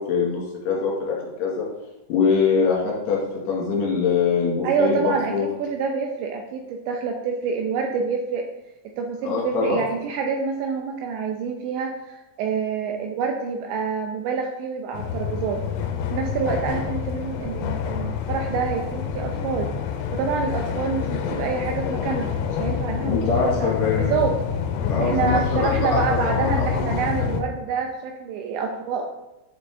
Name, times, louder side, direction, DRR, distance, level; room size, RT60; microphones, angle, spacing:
voice 1, 0.0-1.6 2.1-3.2 3.5-5.5 9.2-9.8 23.0-24.2 24.9-26.8, left 5 dB, 60° left, -4 dB, 3.7 m, -23 dB
voice 2, 4.6-8.4 9.0-15.6 16.1-19.7 20.1-24.3 25.0-29.1, right 5 dB, 85° right, 2 dB, 2.6 m, -27 dB
sound 1, 14.9-27.4, left 7 dB, 85° left, 3.3 m, -27 dB
9.6 x 6.7 x 3.7 m, 0.98 s
omnidirectional pair, 6.0 m